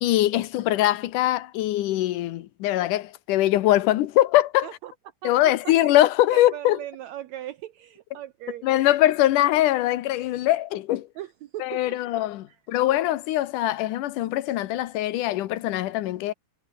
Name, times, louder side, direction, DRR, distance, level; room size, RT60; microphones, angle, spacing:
voice 1, 0.0-4.7 5.2-6.8 8.6-11.1 11.6-16.3, left 14 dB, 85° left, 2.6 m, -22 dB
voice 2, 5.2-5.7 6.3-8.7 11.2-12.0 12.5-12.6, right 13 dB, 70° right, 2.0 m, -38 dB
omnidirectional pair, 3.5 m